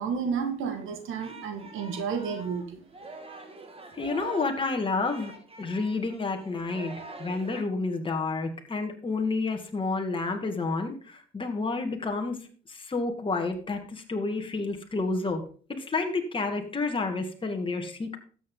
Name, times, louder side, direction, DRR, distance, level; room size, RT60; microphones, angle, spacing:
voice 1, 0.0-2.8, right 6 dB, 85° right, 6 dB, 2.0 m, -31 dB
Singing, 0.7-7.6, right 2 dB, 30° right, 2.1 m, -45 dB
voice 2, 4.0-5.3 5.6-6.9 7.2-12.4 12.7-15.4 15.7-18.2, left 3 dB, 25° left, 3 dB, 2.1 m, -30 dB
12.5 x 7.7 x 3.9 m, 0.41 s
cardioid pair, 90°, 20 cm